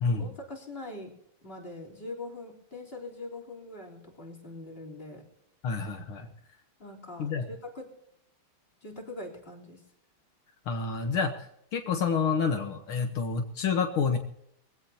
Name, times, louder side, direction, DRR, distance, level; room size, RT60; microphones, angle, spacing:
voice 1, 0.2-1.1 1.4-5.2 6.8-7.9 8.8-9.8, left 2 dB, 25° left, 1 dB, 3.9 m, -42 dB
voice 2, 5.6-6.3 7.2-7.5 10.7-14.2, left 5 dB, 75° left, 4 dB, 2.1 m, -28 dB
23.0 x 16.0 x 2.9 m, 0.75 s
omnidirectional pair, 2.4 m